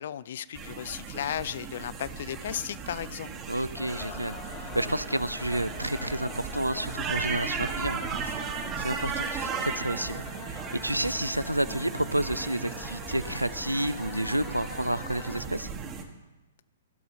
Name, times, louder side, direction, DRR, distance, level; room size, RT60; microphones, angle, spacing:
voice 1, 0.0-3.3, left 10 dB, 50° left, 19 dB, 0.4 m, -35 dB
sound 1, 0.5-16.0, right 5 dB, 25° right, 1.1 m, -36 dB
voice 2, 3.5-8.5 8.8-15.7, right 1 dB, 85° right, 16 dB, 0.4 m, -30 dB
sound 2, 3.7-15.4, left 6 dB, 30° left, 1.5 m, -44 dB
16.0 x 5.7 x 5.2 m, 1.1 s
figure-of-eight pair, 115°, 0 cm